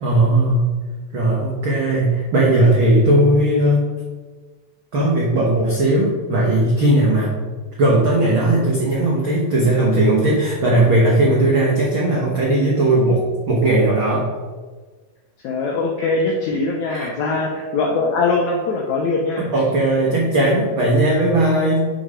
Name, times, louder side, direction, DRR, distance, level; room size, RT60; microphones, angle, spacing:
voice 1, 0.0-0.7 1.1-3.9 4.9-7.3 7.8-14.3 16.9-17.1 19.4-21.9, right 1 dB, 85° right, -4 dB, 1.1 m, -17 dB
voice 2, 15.4-19.5, left 3 dB, 80° left, 0 dB, 1.6 m, -21 dB
6.1 x 5.1 x 4.8 m, 1.4 s
omnidirectional pair, 4.1 m